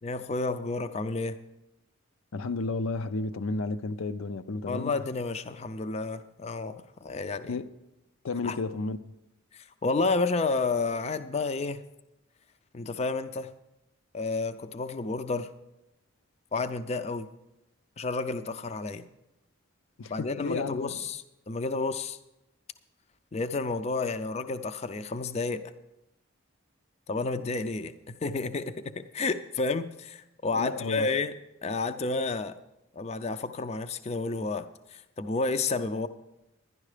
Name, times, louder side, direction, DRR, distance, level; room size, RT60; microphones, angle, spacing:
voice 1, 0.0-1.4 4.7-7.5 8.4-8.6 9.5-11.8 12.7-13.5 14.1-15.5 16.5-17.3 18.0-19.0 20.1-22.2 23.3-25.6 27.1-31.3 31.6-32.6 32.9-36.1, left 3 dB, 30° left, 0.4 m, -31 dB
voice 2, 2.3-5.0 7.5-7.7 8.2-9.1 20.0-21.0 30.5-31.1, left 3 dB, 80° left, 0.5 m, -32 dB
11.5 x 11.0 x 5.0 m
head